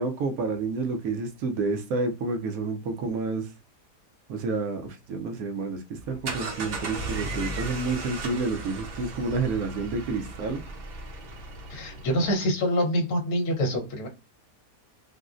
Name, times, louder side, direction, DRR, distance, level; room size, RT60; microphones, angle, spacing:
voice 1, 0.0-3.5 4.3-5.8 6.1-10.6, right 3 dB, 70° right, 0.9 m, -29 dB
sound 1, 6.0-12.3, right 3 dB, 85° right, 0.5 m, -36 dB
voice 2, 11.7-14.1, equal, 65° left, 1.3 m, -26 dB
3.7 x 2.0 x 2.4 m
omnidirectional pair, 1.8 m